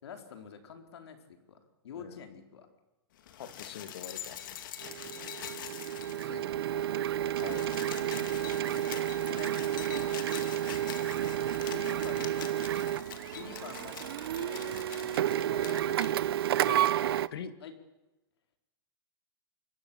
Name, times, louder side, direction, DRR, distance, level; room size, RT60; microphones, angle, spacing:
voice 1, 0.0-1.6 1.8-2.7 5.1-5.3 6.2-7.3 9.3-9.6 11.6-12.6 13.3-16.0 17.6-17.7, left 7 dB, 85° left, 5 dB, 4.4 m, -48 dB
sound 1, 3.2-6.5 6.8-6.9 7.1-16.1 17.1-17.2, left 10 dB, 50° left, 2.5 m, -44 dB
voice 2, 3.4-4.4 6.3-6.4 7.4-7.6 16.6-16.8 17.3-17.5, left 8 dB, 70° left, 10 dB, 2.2 m, -43 dB
Printer, 4.8-17.3, right 11 dB, 65° right, 0.8 m, -31 dB
sound 2, 7.3-7.8 8.5-8.9 9.8-10.3 11.3-11.8 12.6-13.0 14.4-14.8 15.4-15.9 16.6-17.2, left 4 dB, 10° left, 2.4 m, -52 dB
25.5 x 22.0 x 7.3 m, 1.0 s
supercardioid pair, 175°, 13 cm